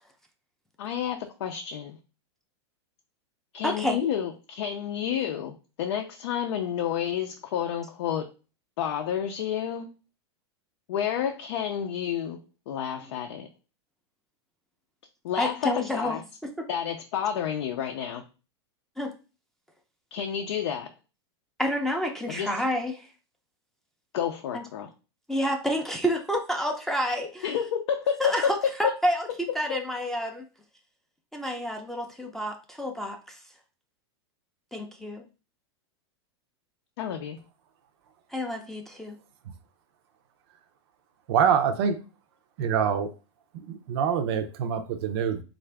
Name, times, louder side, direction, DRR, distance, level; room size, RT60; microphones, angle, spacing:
voice 1, 0.8-2.0 3.5-8.3 8.8-9.9 10.9-13.5 15.2-16.2 16.7-18.3 20.1-20.9 22.3-22.5 24.1-24.9 27.4-28.9 37.0-37.4, left 8 dB, 75° left, 4 dB, 0.5 m, -30 dB
voice 2, 3.6-4.0 15.4-16.2 16.6-16.7 19.0-19.1 21.6-23.1 24.5-24.6 25.3-27.5 28.2-29.3 29.5-30.5 31.3-33.4 34.7-35.2 38.3-39.2, equal, ahead, 2 dB, 0.5 m, -29 dB
voice 3, 41.3-42.0 42.6-43.1 43.7-45.4, right 7 dB, 60° right, 6 dB, 0.6 m, -25 dB
3.6 x 2.5 x 3.3 m, 0.32 s
hypercardioid pair, 130°, 15 cm